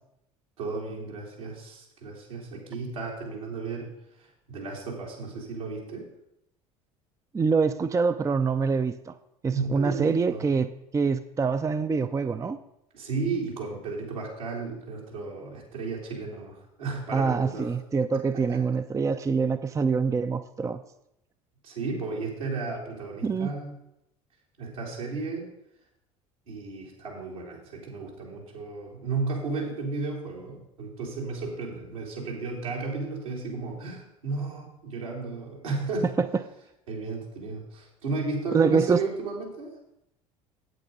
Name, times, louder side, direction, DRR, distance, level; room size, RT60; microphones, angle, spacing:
voice 1, 0.6-3.9 4.2-6.1 9.5-10.5 12.9-17.7 18.3-18.6 21.6-23.7 24.6-25.5 26.5-36.1 36.9-39.7, right 3 dB, 80° right, 3.0 m, -34 dB
voice 2, 7.3-9.1 9.4-10.7 10.9-12.6 17.1-20.8 23.2-23.5 36.2-36.3 38.5-39.0, right 5 dB, 20° right, 0.5 m, -25 dB
8.5 x 8.0 x 5.4 m
figure-of-eight pair, 65°, 17 cm